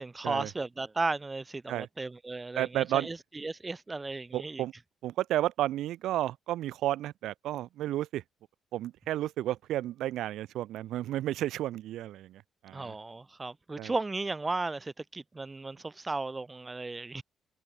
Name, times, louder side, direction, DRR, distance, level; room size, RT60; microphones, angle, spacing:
voice 1, 0.0-4.6 12.7-17.2, right 3 dB, 20° right, 1.0 m, -35 dB
voice 2, 2.6-3.1 4.3-4.7 5.0-8.2 8.7-12.9 13.8-13.9, right 13 dB, 80° right, 0.5 m, -32 dB
cardioid pair, 75°, 0 cm